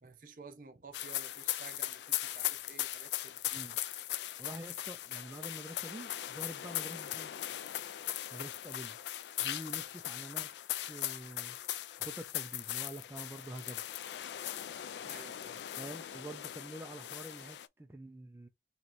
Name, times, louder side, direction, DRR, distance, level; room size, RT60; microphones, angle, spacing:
voice 1, 0.0-3.4 15.0-15.6, right 4 dB, 50° right, 0.7 m, -52 dB
sound 1, 0.9-17.7, left 13 dB, 75° left, 0.3 m, -39 dB
voice 2, 4.4-7.3 8.3-9.0 9.4-11.6 12.0-13.8 15.8-18.5, right 1 dB, 15° right, 0.4 m, -47 dB
3.1 x 2.9 x 4.0 m
head